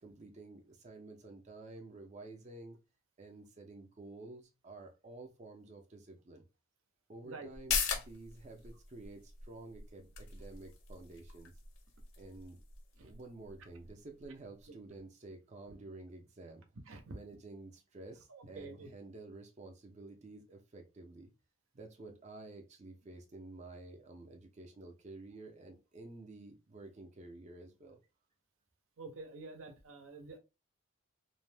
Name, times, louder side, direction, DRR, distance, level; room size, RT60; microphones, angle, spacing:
voice 1, 0.0-2.8 3.2-6.4 7.1-11.5 12.2-12.6 13.0-16.6 17.1-21.3 21.7-28.0, right 2 dB, 35° right, 0.4 m, -51 dB
sound 1, 7.5-14.6 15.0-15.1, left 6 dB, 70° left, 0.6 m, -41 dB
voice 2, 16.9-17.2 18.3-18.9 29.0-30.4, right 3 dB, 75° right, 0.6 m, -48 dB
2.5 x 2.1 x 3.3 m
head